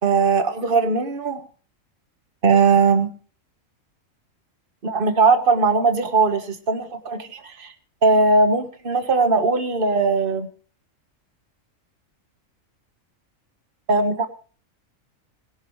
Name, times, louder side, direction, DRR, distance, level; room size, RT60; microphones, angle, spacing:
voice 1, 0.0-1.4 2.4-3.1 4.8-7.7 8.0-10.5 13.9-14.3, right 4 dB, 40° right, 7 dB, 1.7 m, -19 dB
21.0 x 12.0 x 3.2 m, 0.40 s
omnidirectional pair, 1.3 m